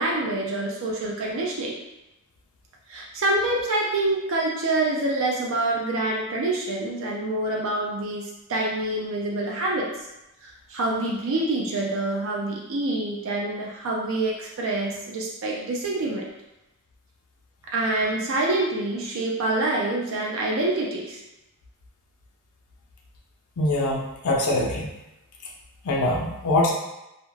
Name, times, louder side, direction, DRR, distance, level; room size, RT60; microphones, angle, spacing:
voice 1, 0.0-1.8 2.9-9.9 10.4-16.2 17.7-21.2, right 2 dB, 65° right, -3 dB, 0.4 m, -26 dB
voice 2, 23.6-24.9 25.9-26.7, left 1 dB, 85° left, -2 dB, 0.5 m, -23 dB
2.4 x 2.1 x 3.1 m, 0.93 s
head